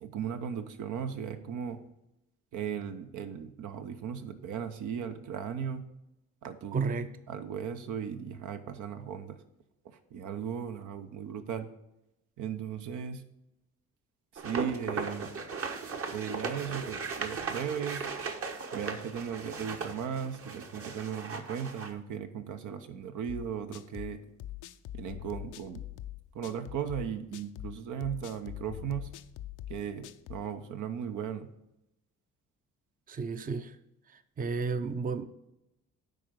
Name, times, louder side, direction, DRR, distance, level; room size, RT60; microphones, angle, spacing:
voice 1, 0.0-1.8 2.5-5.8 6.4-6.9 7.3-9.4 9.8-11.7 12.4-13.2 14.3-15.3 16.1-18.1 18.7-24.2 24.9-25.8 26.3-29.1 29.7-31.5, right 8 dB, 80° right, 0.9 m, -37 dB
voice 2, 6.7-7.1 33.1-33.8 34.1-35.3, right 4 dB, 30° right, 0.6 m, -32 dB
sound 1, 14.4-21.9, right 5 dB, 50° right, 1.1 m, -37 dB
sound 2, 23.3-30.5, left 14 dB, 80° left, 0.6 m, -43 dB
10.0 x 3.9 x 6.4 m
cardioid pair, 90°, 30 cm